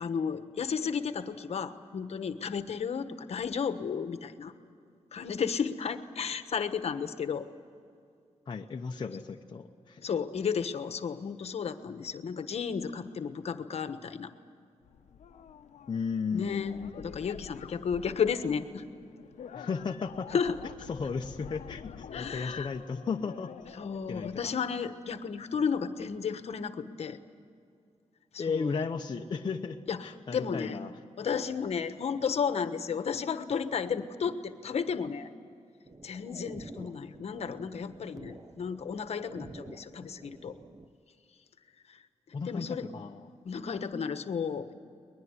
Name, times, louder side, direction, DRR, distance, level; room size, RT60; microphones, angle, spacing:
voice 1, 0.0-4.5 5.1-7.4 10.0-14.3 16.3-18.8 20.3-20.6 22.1-22.8 23.7-27.2 28.3-28.7 29.9-30.8 31.2-35.3 36.0-40.5 41.9-42.0 42.4-42.9 43.4-44.7, left 6 dB, 60° left, 10 dB, 1.2 m, -33 dB
voice 2, 8.5-10.0 15.9-16.9 19.5-20.3 20.9-23.5 24.1-24.5 28.4-30.9 42.3-42.7 42.9-43.3, left 5 dB, 40° left, 2 dB, 0.9 m, -34 dB
sound 1, 14.8-24.5, left 7 dB, 85° left, 0.8 m, -48 dB
sound 2, 35.9-40.9, right 2 dB, 30° right, 0.9 m, -49 dB
22.5 x 21.0 x 9.7 m, 2.3 s
wide cardioid pair, 140°, 12 cm